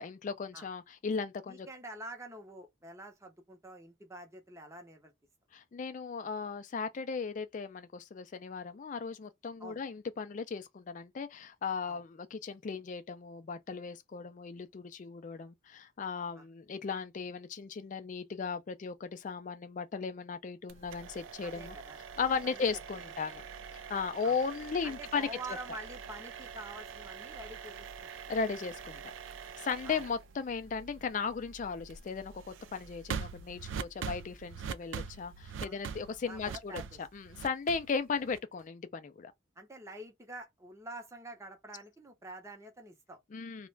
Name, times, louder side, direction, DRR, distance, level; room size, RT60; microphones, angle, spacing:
voice 1, 0.0-1.7 5.5-21.8 22.2-23.4 23.7-25.3 28.3-29.0 29.6-39.3 43.3-43.7, left 5 dB, 40° left, 0.3 m, -36 dB
voice 2, 1.5-5.1 9.6-9.8 11.9-12.0 16.4-16.5 21.4-22.0 22.4-22.6 24.2-24.4 24.8-28.1 29.8-30.1 35.6-37.0 39.6-43.2, right 1 dB, 15° right, 0.6 m, -47 dB
sound 1, 20.7-38.6, right 6 dB, 80° right, 0.3 m, -44 dB
2.4 x 2.1 x 3.0 m
head